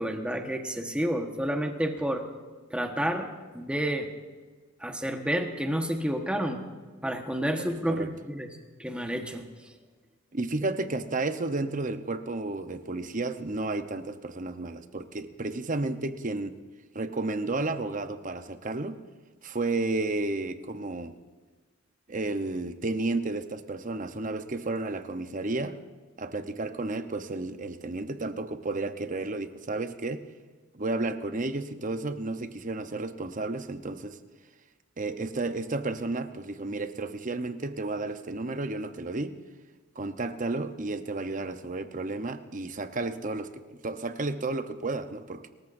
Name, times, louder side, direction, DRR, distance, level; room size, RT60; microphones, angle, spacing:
voice 1, 0.0-2.2 2.7-3.3 3.5-4.1 4.8-6.6 7.0-8.5 8.8-9.4, equal, 5° right, 4 dB, 1.3 m, -30 dB
voice 2, 7.5-8.1 10.3-16.6 16.9-19.0 19.4-21.1 22.1-25.8 26.2-30.2 30.7-34.2 35.0-39.4 39.9-45.5, right 2 dB, 40° right, 9 dB, 0.9 m, -32 dB
29.5 x 14.0 x 2.6 m, 1.4 s
head